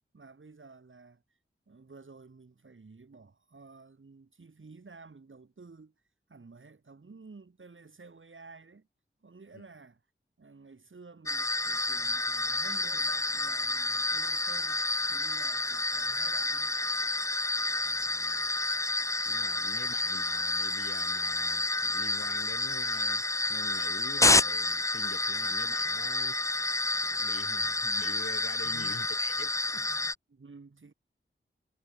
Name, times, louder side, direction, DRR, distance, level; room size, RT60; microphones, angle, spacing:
voice 1, 0.1-1.2 1.7-5.9 6.3-8.9 9.2-10.0 10.4-16.8 28.6-29.0 29.9-30.9, right 4 dB, 70° right, 3.4 m, -52 dB
sound 1, 11.3-30.1, left 2 dB, 15° left, 0.4 m, -29 dB
voice 2, 17.8-18.5 19.2-29.9, left 4 dB, 85° left, 2.9 m, -46 dB
wide cardioid pair, 55°, 21 cm